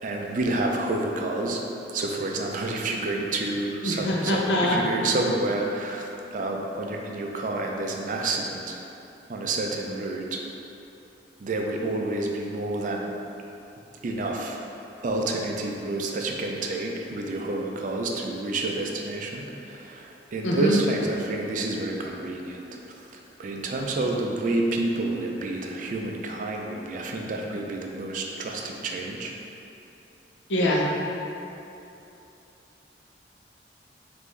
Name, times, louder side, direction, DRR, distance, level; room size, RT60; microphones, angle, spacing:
voice 1, 0.0-1.6 1.9-8.8 9.3-10.4 11.4-13.1 14.0-14.6 15.0-22.6 23.4-29.3, right 2 dB, 45° right, 1 dB, 0.4 m, -29 dB
voice 2, 3.8-4.8 20.4-20.8 30.5-30.8, equal, 80° left, -2 dB, 0.6 m, -23 dB
5.3 x 2.6 x 3.1 m, 2.9 s
head